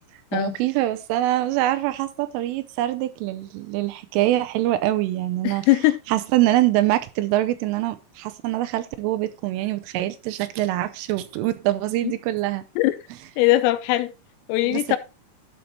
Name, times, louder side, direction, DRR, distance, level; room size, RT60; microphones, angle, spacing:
voice 1, 0.3-5.7 6.1-12.6 14.7-15.0, right 15 dB, 85° right, 3.2 m, -24 dB
voice 2, 5.5-6.0 12.0-12.1 12.8-13.0 13.4-14.1 14.5-15.0, left 16 dB, 90° left, 3.5 m, -20 dB
12.0 x 5.1 x 4.0 m
omnidirectional pair, 5.8 m